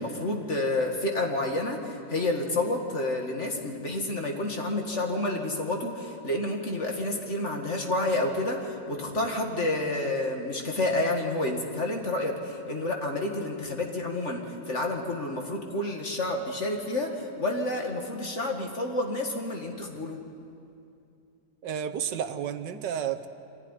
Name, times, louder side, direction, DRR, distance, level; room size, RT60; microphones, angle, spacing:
voice 1, 0.0-20.2, left 2 dB, 40° left, 2 dB, 2.4 m, -29 dB
voice 2, 21.6-23.3, right 8 dB, 75° right, 8 dB, 1.5 m, -31 dB
24.5 x 16.0 x 10.0 m, 2.5 s
omnidirectional pair, 2.0 m